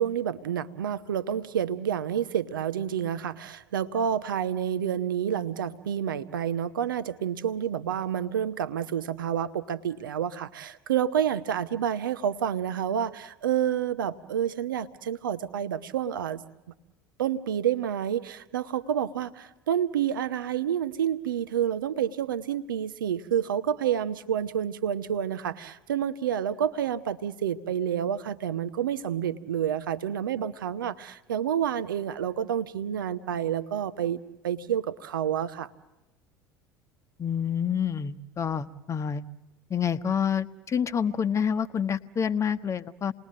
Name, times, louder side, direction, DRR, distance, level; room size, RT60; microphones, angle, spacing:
voice 1, 0.0-16.4 17.2-35.7, right 9 dB, 70° right, 12 dB, 0.8 m, -29 dB
voice 2, 37.2-39.2 39.7-43.1, left 7 dB, 25° left, 11 dB, 1.0 m, -28 dB
28.5 x 20.5 x 7.4 m, 1.0 s
figure-of-eight pair, 70°, 11 cm